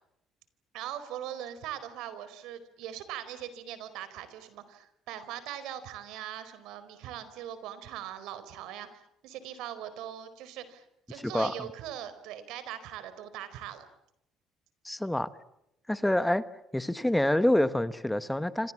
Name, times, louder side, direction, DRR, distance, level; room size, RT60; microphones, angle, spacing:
voice 1, 0.7-13.9, right 11 dB, 90° right, 13 dB, 4.5 m, -41 dB
voice 2, 11.1-11.5 14.8-15.3 15.9-16.4 16.7-18.7, left 1 dB, 5° left, 13 dB, 1.0 m, -27 dB
28.5 x 26.5 x 7.4 m, 0.82 s
cardioid pair, 145°, 0 cm